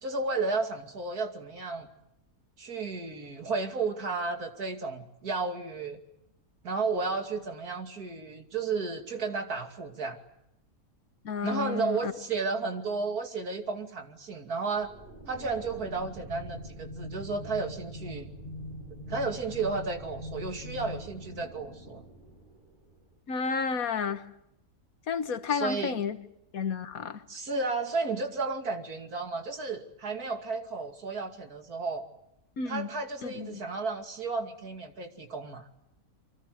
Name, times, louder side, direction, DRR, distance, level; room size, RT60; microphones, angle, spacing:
voice 1, 0.0-1.9 2.6-6.0 6.6-10.2 11.4-14.9 15.3-18.3 19.1-22.0 25.5-26.0 27.3-32.0 32.7-35.7, right 4 dB, 80° right, 5 dB, 3.0 m, -33 dB
voice 2, 11.2-12.1 23.3-24.3 25.1-26.2 26.5-27.2 32.6-32.9 33.2-33.6, left 5 dB, 70° left, 10 dB, 1.8 m, -31 dB
sound 1, 14.8-23.0, equal, 35° right, 6.1 m, -43 dB
28.0 x 24.5 x 7.7 m, 0.81 s
omnidirectional pair, 1.6 m